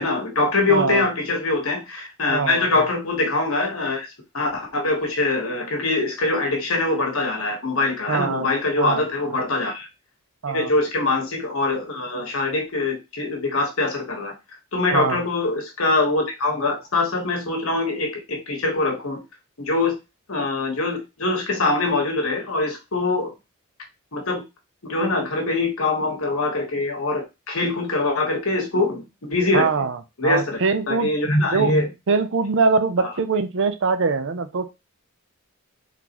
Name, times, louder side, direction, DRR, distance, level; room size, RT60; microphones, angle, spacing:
voice 1, 0.0-4.1 4.3-9.9 10.5-14.3 14.7-19.2 19.6-19.9 20.3-23.3 24.1-24.4 24.8-29.9 30.2-30.6 30.9-31.9 33.0-33.1, left 2 dB, 65° left, 2 dB, 1.3 m, -23 dB
voice 2, 0.7-1.0 2.3-2.7 8.1-8.5 8.8-9.0 9.3-9.5 10.4-10.7 14.9-15.2 29.5-30.0 30.2-31.1 31.5-31.7 32.1-34.7, right 4 dB, 60° right, 10 dB, 0.5 m, -22 dB
3.7 x 3.7 x 2.9 m, 0.24 s
head